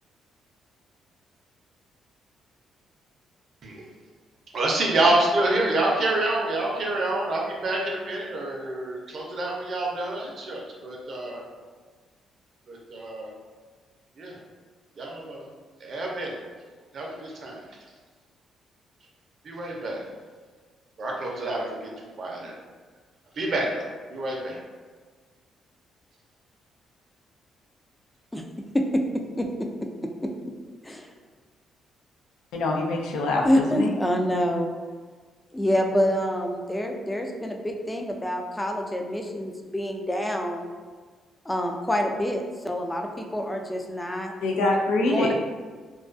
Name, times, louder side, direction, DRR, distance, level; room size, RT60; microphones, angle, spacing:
voice 1, 4.5-11.4 12.7-13.3 14.2-14.4 15.0-15.5 15.8-16.4 16.9-17.6 19.4-20.0 21.0-22.6 23.4-24.6, right 2 dB, 55° right, -1 dB, 0.5 m, -27 dB
voice 2, 29.4-29.7 30.2-30.3 30.8-31.1 33.4-34.7 35.5-40.7 41.5-44.3 45.1-45.3, equal, 10° left, 2 dB, 0.3 m, -26 dB
voice 3, 32.5-33.9 44.4-45.3, left 2 dB, 90° left, 0 dB, 0.3 m, -24 dB
2.3 x 2.2 x 2.5 m, 1.5 s
cardioid pair, 90°, 0 cm